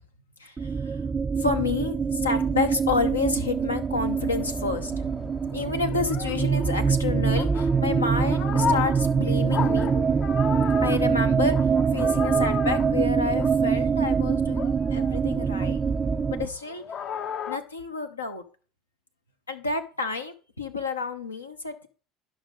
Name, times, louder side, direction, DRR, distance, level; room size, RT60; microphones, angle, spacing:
sound 1, 0.6-16.5, right 6 dB, 25° right, 0.3 m, -24 dB
voice 1, 1.4-5.1 5.5-9.9 10.8-11.6 11.9-15.8 16.3-16.8 17.5-18.4 19.5-21.9, left 4 dB, 90° left, 6 dB, 0.9 m, -29 dB
sound 2, 4.0-14.2 14.5-17.6, left 7 dB, 45° left, 0.6 m, -35 dB
11.0 x 6.2 x 3.8 m, 0.38 s
figure-of-eight pair, 65°, 0 cm